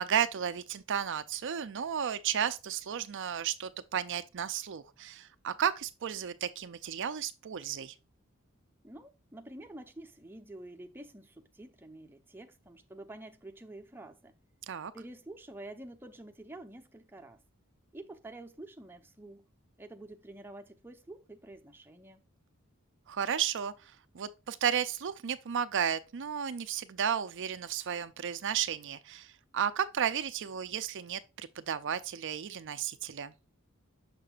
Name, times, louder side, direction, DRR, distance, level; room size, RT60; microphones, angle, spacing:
voice 1, 0.0-7.9 14.7-14.9 23.1-23.7 24.1-33.3, right 8 dB, 60° right, 0.5 m, -33 dB
voice 2, 8.8-14.3 14.9-17.4 17.9-19.4 19.8-22.2, right 1 dB, 10° right, 0.8 m, -48 dB
6.7 x 6.6 x 2.4 m
head